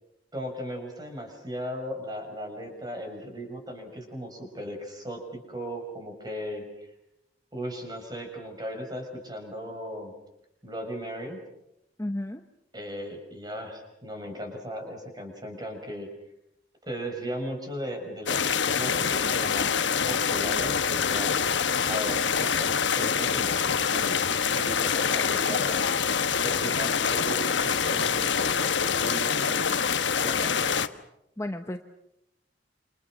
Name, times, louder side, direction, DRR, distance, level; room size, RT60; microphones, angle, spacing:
voice 1, 0.3-6.9 7.5-10.1 10.6-11.4 12.7-16.1 16.8-21.4 21.9-25.8 26.4-29.3 30.2-30.6, equal, 20° right, 4 dB, 6.2 m, -37 dB
voice 2, 12.0-12.4 31.4-31.8, left 1 dB, 15° left, 6 dB, 1.0 m, -32 dB
sound 1, 18.3-30.9, left 6 dB, 85° left, 1.1 m, -25 dB
28.5 x 27.5 x 6.3 m, 0.83 s
head